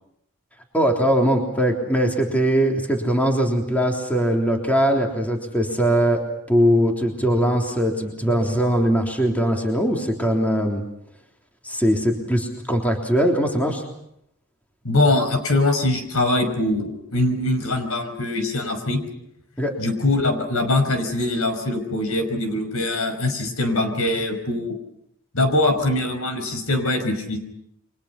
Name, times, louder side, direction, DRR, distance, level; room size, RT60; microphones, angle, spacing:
voice 1, 0.7-6.2 6.5-10.8 11.6-13.8 19.6-19.7, equal, 5° left, 1 dB, 3.5 m, -21 dB
voice 2, 14.8-19.0 19.8-24.7 25.3-27.4, left 2 dB, 75° left, 7 dB, 5.6 m, -22 dB
29.5 x 24.5 x 5.9 m, 0.76 s
head